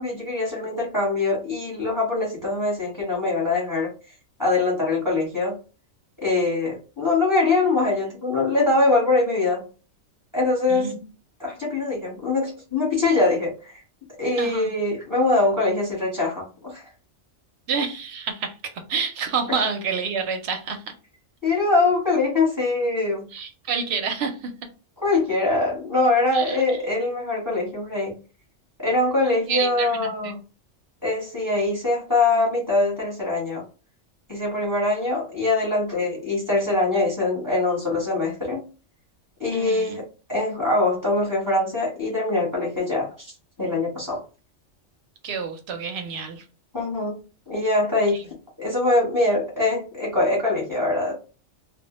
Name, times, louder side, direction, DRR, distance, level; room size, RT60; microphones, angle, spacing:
voice 1, 0.0-3.9 4.4-5.6 6.2-9.7 10.3-11.0 11.4-13.8 14.2-16.8 19.5-19.6 21.4-23.3 25.0-28.1 28.8-30.4 31.0-33.6 34.3-38.7 39.4-43.3 43.6-44.2 46.7-47.1 47.5-48.2 48.6-51.1, left 2 dB, 15° left, -3 dB, 0.8 m, -23 dB
voice 2, 10.7-11.0 14.4-14.7 17.7-20.9 23.3-24.5 26.3-26.6 29.5-30.3 39.5-40.0 45.2-46.4 48.1-48.3, right 5 dB, 65° right, 6 dB, 0.7 m, -28 dB
2.1 x 2.1 x 2.9 m, 0.34 s
omnidirectional pair, 1.3 m